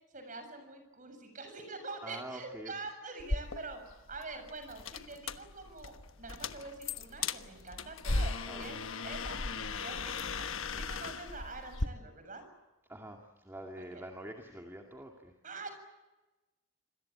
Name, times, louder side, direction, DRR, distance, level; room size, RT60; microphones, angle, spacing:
voice 1, 0.1-3.8 4.1-12.4 13.8-14.0 15.4-15.7, right 3 dB, 35° right, 7 dB, 7.1 m, -45 dB
voice 2, 2.0-2.7 8.5-8.7 10.7-11.0 12.9-15.3, right 1 dB, 10° right, 2 dB, 2.3 m, -46 dB
sound 1, 3.2-11.9, left 3 dB, 70° left, 1.3 m, -37 dB
27.5 x 22.0 x 8.7 m, 1.1 s
head